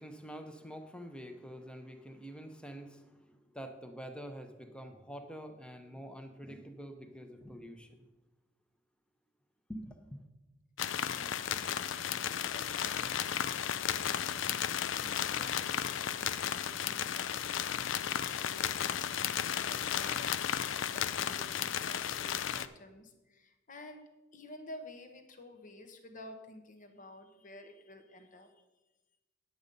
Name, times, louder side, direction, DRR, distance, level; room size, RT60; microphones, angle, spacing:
voice 1, 0.0-8.1 9.7-10.2, equal, 5° left, 6 dB, 0.8 m, -46 dB
sound 1, 10.8-22.7, left 9 dB, 80° left, 0.4 m, -34 dB
voice 2, 11.0-14.2 15.0-20.5 20.8-24.0 24.3-28.5, left 1 dB, 45° left, 7 dB, 1.0 m, -52 dB
10.0 x 7.9 x 5.3 m, 1.1 s
head